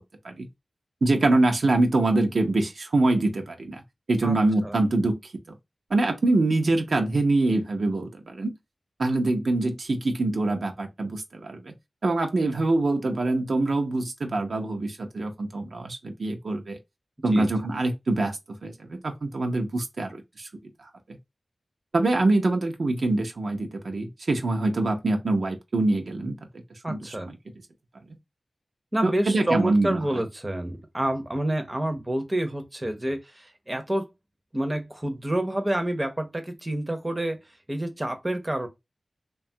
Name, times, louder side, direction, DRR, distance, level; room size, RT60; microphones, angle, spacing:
voice 1, 1.0-3.8 4.1-5.2 5.9-8.5 9.0-11.7 12.0-16.8 17.2-20.5 21.9-26.4 26.9-27.0 29.0-30.0, right 2 dB, 75° right, 0.6 m, -24 dB
voice 2, 26.8-27.3 28.9-34.1 34.5-37.4 37.7-38.7, right 1 dB, 25° right, 0.6 m, -28 dB
2.8 x 2.2 x 2.7 m
wide cardioid pair, 60°, 0 cm